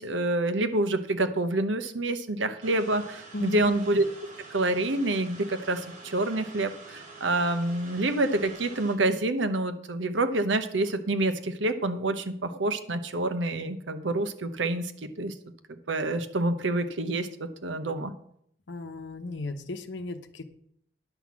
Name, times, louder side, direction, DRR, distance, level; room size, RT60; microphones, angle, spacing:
voice 1, 0.0-4.1 4.5-15.3 15.7-18.1, right 2 dB, 80° right, 10 dB, 0.9 m, -27 dB
sound 1, 2.6-8.9, right 3 dB, 45° right, 2.6 m, -47 dB
voice 2, 3.3-3.7 18.7-20.4, left 2 dB, 70° left, 7 dB, 0.9 m, -36 dB
10.0 x 5.9 x 7.2 m, 0.70 s
head